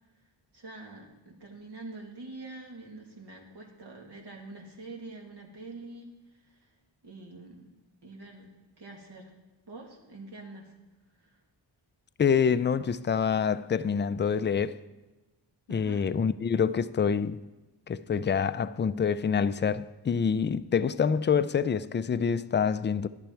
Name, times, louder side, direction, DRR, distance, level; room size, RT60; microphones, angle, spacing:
voice 1, 0.5-6.7 7.0-7.7 8.0-9.3 9.7-10.7 11.2-11.4 15.7-16.0, right 2 dB, 60° right, 2.3 m, -45 dB
voice 2, 12.2-14.8 15.7-17.4 17.9-23.1, left 6 dB, 25° left, 0.4 m, -26 dB
11.5 x 10.5 x 4.5 m
cardioid pair, 65°, 44 cm